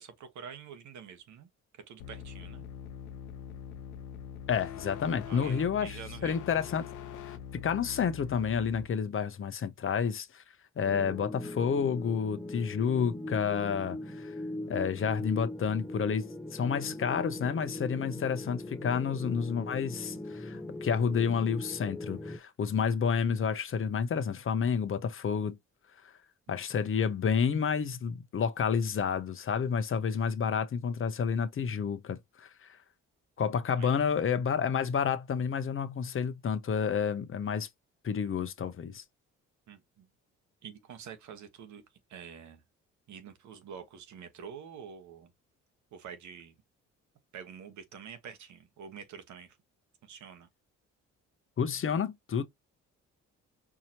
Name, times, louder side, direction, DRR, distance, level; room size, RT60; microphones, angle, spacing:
voice 1, 0.0-1.5 1.7-2.6 5.3-6.4 26.5-26.6 33.8-34.0 39.7-40.1 40.6-41.8 42.1-42.6 43.1-45.3 45.9-46.5 47.3-49.6 50.0-50.5, right 7 dB, 70° right, 1.2 m, -47 dB
sound 1, 2.0-8.9, left 8 dB, 85° left, 0.9 m, -43 dB
voice 2, 4.5-6.9 7.2-10.4 10.8-14.3 14.7-25.6 26.5-32.8 33.4-37.7 38.0-39.0 51.6-52.4, left 6 dB, 45° left, 0.8 m, -30 dB
sound 2, 10.8-22.4, left 1 dB, 5° left, 0.9 m, -40 dB
4.8 x 2.9 x 2.8 m
cardioid pair, 90°, 30 cm